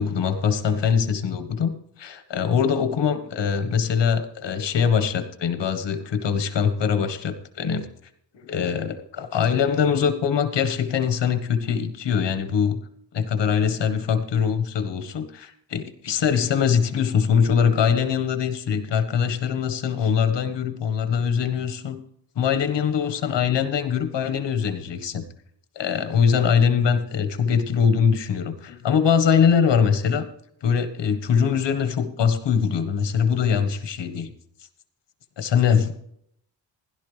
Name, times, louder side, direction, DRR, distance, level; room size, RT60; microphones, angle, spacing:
voice 1, 0.0-7.9 8.5-12.8 13.1-22.0 22.3-25.2 25.7-30.2 30.6-34.3 35.4-35.9, left 7 dB, 85° left, 9 dB, 1.5 m, -22 dB
16.0 x 11.5 x 3.4 m, 0.70 s
wide cardioid pair, 110°, 42 cm